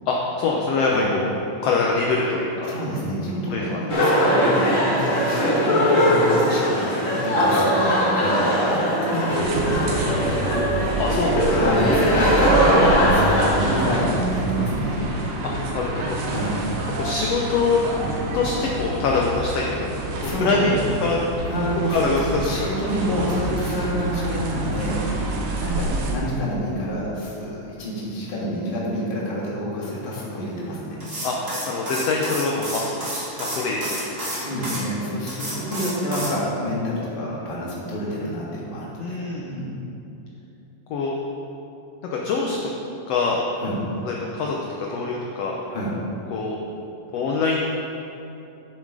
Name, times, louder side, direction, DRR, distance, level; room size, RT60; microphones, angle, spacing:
voice 1, 0.1-2.7 3.5-3.8 9.1-9.4 11.0-11.6 15.7-16.2 17.0-17.8 18.3-20.7 21.0-21.2 21.9-22.7 31.2-31.4 31.7-34.1 39.0-39.5 40.9-41.1 42.1-42.7 43.1-43.4 44.0-45.6 46.3-46.6 47.1-47.6, left 4 dB, 80° left, -2 dB, 1.4 m, -24 dB
voice 2, 2.6-10.0 11.5-15.0 16.2-16.6 20.2-20.8 21.5-25.0 25.6-31.0 34.2-39.7 43.5-43.7 45.7-45.9, equal, 25° left, -6 dB, 1.3 m, -28 dB
sound 1, 3.9-14.1, equal, 40° left, 1.2 m, -20 dB
sound 2, 9.3-26.2, right 2 dB, 70° right, 2.2 m, -27 dB
sound 3, 31.0-34.8 35.3-36.3, right 1 dB, 30° right, 1.9 m, -30 dB
9.7 x 7.3 x 4.8 m, 2.9 s
omnidirectional pair, 3.8 m